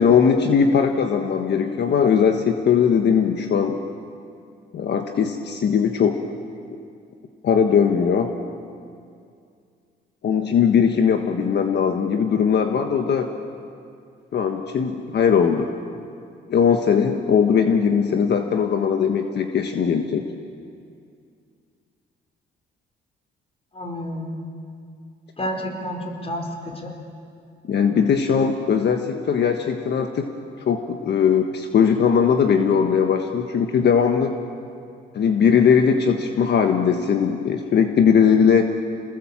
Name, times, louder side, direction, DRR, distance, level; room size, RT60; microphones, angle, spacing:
voice 1, 0.0-3.8 4.7-6.2 7.4-8.3 10.2-13.3 14.3-15.7 16.5-20.2 27.7-30.3 30.6-34.3 35.1-38.6, left 7 dB, 60° left, 5 dB, 1.4 m, -19 dB
voice 2, 23.7-24.3 25.4-26.9, equal, 30° left, 2 dB, 4.7 m, -30 dB
28.5 x 20.0 x 7.5 m, 2.3 s
cardioid pair, 90°, 20 cm